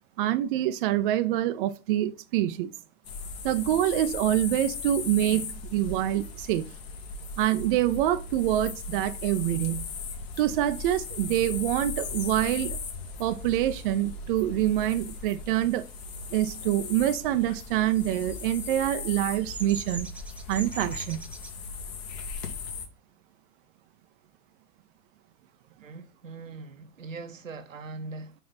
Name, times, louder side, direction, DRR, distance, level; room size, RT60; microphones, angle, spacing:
voice 1, 0.2-2.7 3.4-6.7 7.4-9.9 10.4-12.8 13.2-15.9 16.3-20.1 20.5-21.3, right 13 dB, 40° right, 0.6 m, -26 dB
sound 1, 3.0-22.9, left 4 dB, 55° left, 2.1 m, -38 dB
Bird vocalization bird call bird song, 17.8-21.5, right 3 dB, 5° right, 0.4 m, -40 dB
voice 2, 25.8-28.3, right 3 dB, 75° right, 1.1 m, -41 dB
5.5 x 5.4 x 4.0 m
figure-of-eight pair, 100°, 38 cm